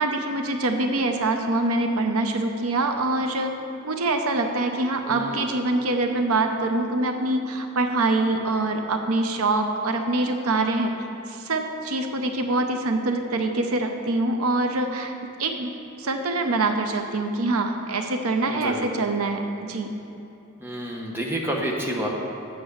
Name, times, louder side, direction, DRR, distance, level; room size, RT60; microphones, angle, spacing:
voice 1, 0.0-3.5 3.8-10.9 11.3-15.1 15.4-15.7 16.0-19.9, right 2 dB, 85° right, 5 dB, 0.7 m, -24 dB
voice 2, 5.1-5.6 18.5-19.1 20.6-22.1, right 1 dB, 10° right, -2 dB, 1.0 m, -30 dB
8.0 x 6.8 x 6.4 m, 2.9 s
head